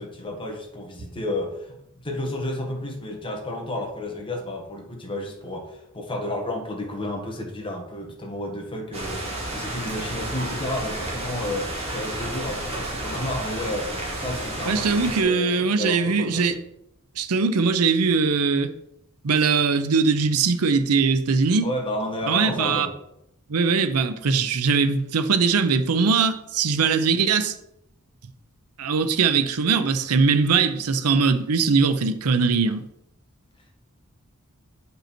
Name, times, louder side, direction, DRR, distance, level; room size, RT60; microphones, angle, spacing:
voice 1, 0.0-1.8 2.0-16.5 21.6-22.9, left 1 dB, 25° left, 1.7 m, -31 dB
sound 1, 8.9-15.2, right 1 dB, 30° right, 2.1 m, -31 dB
voice 2, 14.7-16.6 17.2-18.7 19.2-21.7 22.3-22.9 23.5-27.6 28.8-32.8, right 5 dB, 90° right, 0.6 m, -21 dB
9.0 x 5.4 x 4.4 m
head